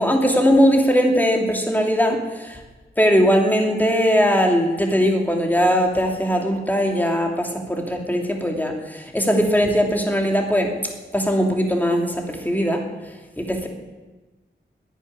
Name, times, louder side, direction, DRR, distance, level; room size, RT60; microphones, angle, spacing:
voice 1, 0.0-2.6 3.0-10.7 11.1-12.8 13.4-13.7, equal, 10° left, 2 dB, 2.8 m, -20 dB
11.0 x 10.0 x 9.8 m, 1.2 s
wide cardioid pair, 75°, 19 cm